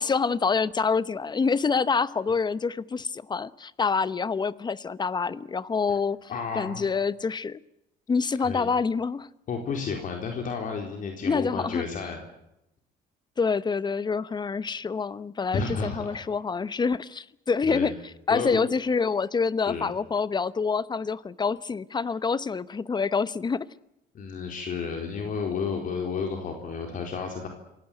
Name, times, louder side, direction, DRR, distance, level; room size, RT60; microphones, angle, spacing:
voice 1, 0.0-6.3 6.5-7.6 8.1-9.3 11.2-11.8 13.4-17.9 18.3-23.7, left 5 dB, 25° left, 18 dB, 1.0 m, -26 dB
voice 2, 6.3-6.9 8.4-8.7 9.5-12.2 15.5-16.2 17.6-17.9 18.3-18.6 19.6-19.9 24.1-27.5, left 5 dB, 50° left, 3 dB, 4.2 m, -31 dB
27.0 x 17.5 x 9.1 m, 0.84 s
cardioid pair, 110°, 17 cm